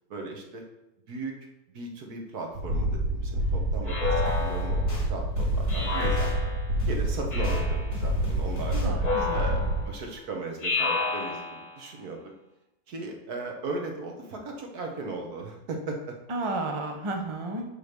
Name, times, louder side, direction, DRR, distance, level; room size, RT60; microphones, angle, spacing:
voice 1, 0.1-0.6 1.1-1.3 1.7-4.8 5.1-6.5 6.9-8.9 9.3-12.3 12.9-16.2, right 3 dB, 75° right, 2 dB, 1.8 m, -37 dB
sound 1, 2.5-9.8, right 1 dB, 55° right, 2.6 m, -28 dB
Speech synthesizer, 3.9-5.0 5.7-6.7 7.3-8.0 9.0-9.9 10.6-11.8, left 4 dB, 85° left, 2.0 m, -31 dB
sound 2, 4.2-5.0 5.3-6.3 6.8-7.6 7.9-8.9, left 1 dB, 40° left, 2.8 m, -37 dB
voice 2, 8.7-9.9 16.3-17.7, right 2 dB, 25° right, 3 dB, 0.8 m, -33 dB
5.7 x 5.1 x 6.6 m, 0.93 s
omnidirectional pair, 1.6 m